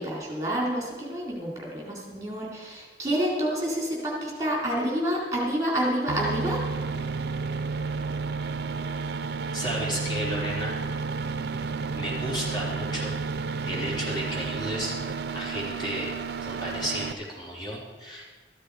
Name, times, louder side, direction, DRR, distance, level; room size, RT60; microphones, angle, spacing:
voice 1, 0.0-6.6, equal, 20° right, -3 dB, 3.9 m, -28 dB
sound 1, 6.1-17.1, right 4 dB, 60° right, 0.5 m, -31 dB
voice 2, 9.5-10.7 11.9-13.1 13.6-14.9 15.3-16.1 16.4-18.3, equal, 25° left, -5 dB, 3.7 m, -33 dB
14.0 x 14.0 x 4.9 m, 1.4 s
head